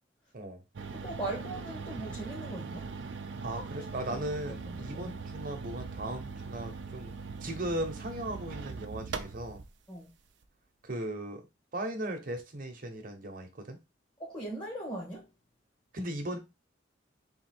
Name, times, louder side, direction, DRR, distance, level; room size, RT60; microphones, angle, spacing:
sound 1, 0.7-9.7, right 4 dB, 70° right, 0.5 m, -41 dB
voice 1, 0.9-2.9 4.1-4.8 5.0-5.1 9.9-10.1 14.2-15.3, right 1 dB, 25° left, 1.4 m, -40 dB
voice 2, 3.4-7.1 7.4-9.6 10.8-11.4 11.7-13.8 15.9-16.4, right 1 dB, 50° right, 1.0 m, -37 dB
3.8 x 2.8 x 4.3 m
head